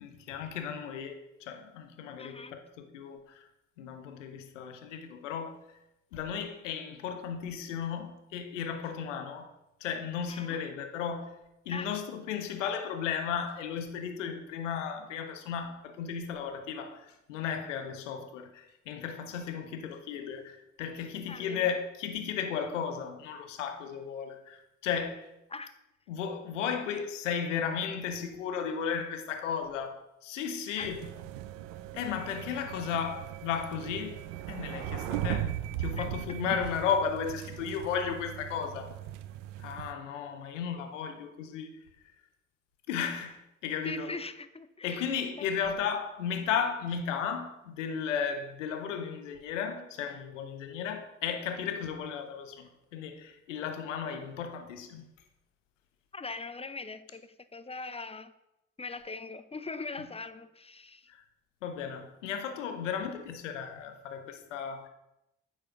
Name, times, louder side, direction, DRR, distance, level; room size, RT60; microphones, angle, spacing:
voice 1, 0.0-3.5 3.8-5.6 6.1-11.4 11.7-25.3 26.1-31.1 31.9-34.2 34.5-35.5 35.8-38.9 39.6-41.8 42.9-44.2 44.8-55.1 61.1-61.2 61.6-64.9, left 7 dB, 90° left, 0.8 m, -35 dB
voice 2, 2.2-2.6 10.3-10.6 11.7-11.9 21.3-21.7 25.5-25.7 30.8-30.9 36.0-36.1 43.8-45.5 56.1-58.3 58.8-61.1, left 3 dB, 15° left, 0.7 m, -41 dB
sound 1, 30.8-39.9, right 12 dB, 85° right, 0.5 m, -38 dB
9.0 x 4.4 x 5.9 m
hypercardioid pair, 45°, 36 cm